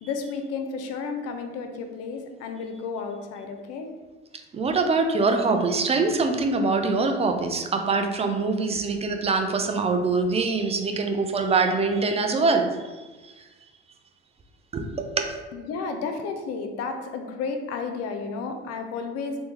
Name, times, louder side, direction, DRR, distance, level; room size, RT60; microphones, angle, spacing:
voice 1, 0.0-3.9 15.5-19.4, left 4 dB, 55° left, 5 dB, 0.5 m, -32 dB
voice 2, 4.5-12.7 14.7-15.3, right 3 dB, 20° right, 5 dB, 0.4 m, -24 dB
3.3 x 2.1 x 2.9 m, 1.2 s
hypercardioid pair, 60°, 30 cm